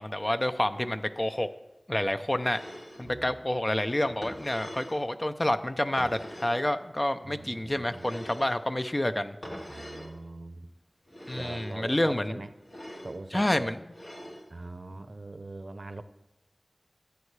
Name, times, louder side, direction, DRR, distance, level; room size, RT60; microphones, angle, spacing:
voice 1, 0.0-1.5 1.9-2.6 3.0-9.4 11.3-12.4 13.3-13.8, left 1 dB, 30° left, 9 dB, 0.6 m, -28 dB
sound 1, 2.4-3.1 4.0-5.0 6.0-6.7 7.9-8.6 9.4-10.1 11.1-11.8 12.6-13.2 13.9-14.5, equal, 60° left, 2.5 m, -43 dB
voice 2, 3.0-3.4 7.2-8.1 9.7-10.7 11.4-12.5 13.0-13.7 14.5-16.0, right 2 dB, 65° right, 11 dB, 0.6 m, -42 dB
14.0 x 8.2 x 3.3 m, 1.1 s
wide cardioid pair, 50°, 0 cm